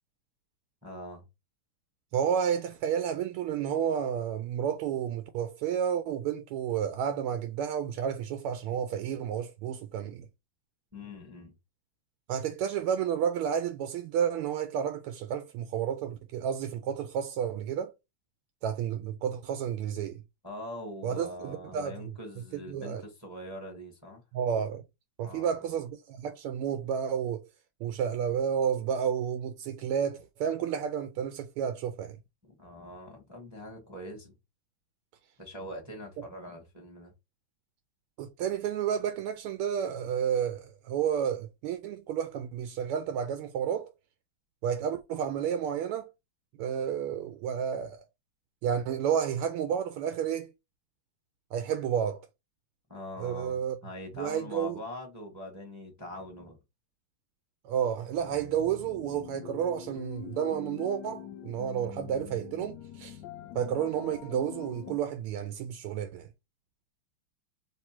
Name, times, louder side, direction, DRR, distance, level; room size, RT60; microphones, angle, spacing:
voice 1, 0.8-1.2 10.9-11.5 20.4-24.2 25.2-25.5 32.4-34.3 35.4-37.1 52.9-56.6, left 1 dB, 10° right, 1.0 m, -43 dB
voice 2, 2.1-10.3 12.3-17.9 18.6-20.2 21.0-22.1 22.5-23.0 24.3-24.8 25.2-27.5 27.8-32.2 38.2-43.9 44.6-46.1 46.6-48.0 48.6-50.5 51.5-52.3 53.2-53.7 54.2-54.8 57.6-63.2 63.5-66.3, right 8 dB, 80° right, 1.5 m, -31 dB
sound 1, 58.2-65.0, left 10 dB, 90° left, 0.9 m, -44 dB
3.3 x 3.2 x 4.3 m
omnidirectional pair, 2.4 m